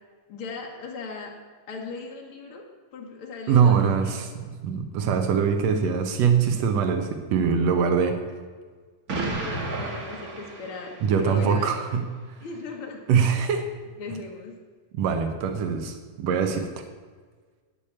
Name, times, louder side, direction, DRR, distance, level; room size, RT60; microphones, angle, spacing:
voice 1, 0.3-1.4 1.7-2.7 2.9-4.2 9.2-11.7 12.4-13.0 14.0-14.6, left 3 dB, 65° left, 0 dB, 1.3 m, -37 dB
voice 2, 3.5-8.2 11.0-12.0 13.1-13.6 14.9-16.7, right 6 dB, 75° right, 6 dB, 1.6 m, -23 dB
Explosion, 9.1-11.3, right 2 dB, 45° right, 1.2 m, -32 dB
8.8 x 8.4 x 8.5 m, 1.5 s
omnidirectional pair, 4.1 m